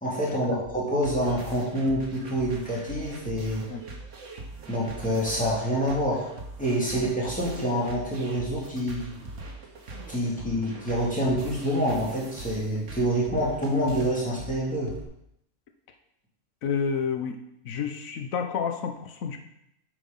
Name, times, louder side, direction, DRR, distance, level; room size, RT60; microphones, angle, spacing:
voice 1, 0.0-3.6 4.7-6.2 6.6-9.1 10.1-14.9, equal, 5° left, -6 dB, 2.7 m, -27 dB
sound 1, 0.7-15.0, right 2 dB, 65° right, 1.6 m, -41 dB
voice 2, 16.6-17.4 17.6-19.4, left 6 dB, 90° left, 5 dB, 1.3 m, -29 dB
8.5 x 5.3 x 5.5 m, 0.79 s
omnidirectional pair, 1.4 m